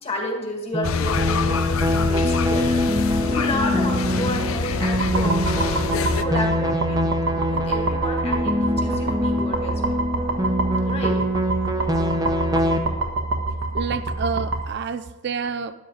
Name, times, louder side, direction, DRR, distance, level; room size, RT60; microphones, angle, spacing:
voice 1, 0.0-2.8 3.2-5.8 6.2-7.0 7.4-10.0 10.8-11.2, left 2 dB, 30° left, 2 dB, 1.8 m, -31 dB
sound 1, 0.7-12.8, equal, 20° right, 0.8 m, -24 dB
sound 2, 0.8-6.2, left 5 dB, 80° left, 0.6 m, -25 dB
sound 3, 5.0-14.7, right 2 dB, 90° right, 1.4 m, -27 dB
voice 2, 13.7-15.7, right 6 dB, 55° right, 11 dB, 0.4 m, -28 dB
12.5 x 10.5 x 4.0 m, 1.1 s
head